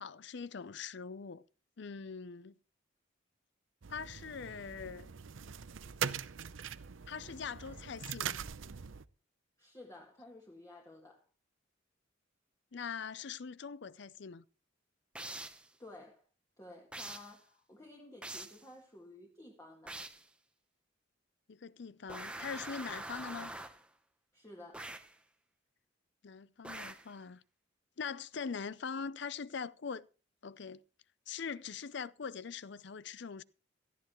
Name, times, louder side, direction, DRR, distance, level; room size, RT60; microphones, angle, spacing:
voice 1, 0.0-1.4 1.8-2.5 3.9-5.1 7.1-8.4 12.7-14.4 21.5-23.5 26.2-27.4 28.0-30.1 30.4-30.8 31.3-33.4, left 6 dB, 60° left, 0.5 m, -42 dB
sound 1, 3.8-9.0, right 7 dB, 80° right, 0.7 m, -42 dB
voice 2, 9.6-11.3 15.8-16.3 16.6-20.0 24.3-24.9, left 2 dB, 15° left, 1.8 m, -53 dB
sound 2, 15.1-15.7 16.9-17.4 18.2-18.6 19.9-20.3 22.1-23.9 24.7-25.2 26.6-27.1, right 1 dB, 5° right, 0.9 m, -44 dB
17.5 x 14.0 x 3.1 m
head